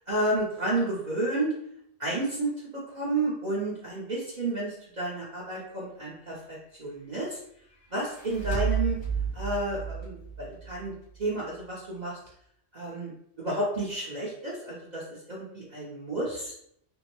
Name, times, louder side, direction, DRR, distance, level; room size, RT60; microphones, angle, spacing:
voice 1, 0.1-1.5 2.0-2.5 2.9-7.4 7.9-9.0 9.3-10.9 11.2-12.2 12.7-13.1 13.4-16.5, right 2 dB, 45° right, -6 dB, 0.7 m, -31 dB
sound 1, 7.9-11.3, right 7 dB, 90° left, 1.4 m, -32 dB
3.5 x 2.0 x 3.0 m, 0.70 s
omnidirectional pair, 1.2 m